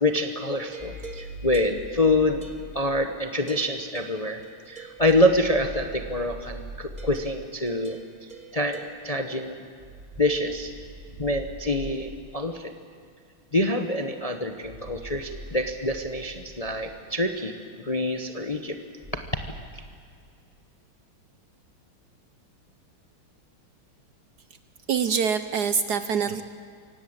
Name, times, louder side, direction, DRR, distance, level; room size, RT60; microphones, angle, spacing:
voice 1, 0.0-2.4 2.7-4.4 4.7-8.0 8.5-9.6 10.2-10.7 11.2-12.7 13.5-18.8 19.7-19.8, left 1 dB, 30° left, 6 dB, 0.8 m, -26 dB
sound 1, 0.7-3.1 3.5-5.8 7.0-8.9, right 5 dB, 20° right, 1.6 m, -45 dB
sound 2, 0.8-3.1 5.0-7.5 9.8-12.4 14.6-17.2 19.0-19.7, right 1 dB, 5° right, 6.3 m, -42 dB
voice 2, 24.9-26.4, right 6 dB, 65° right, 11 dB, 1.1 m, -25 dB
24.5 x 17.5 x 8.8 m, 2.3 s
omnidirectional pair, 2.3 m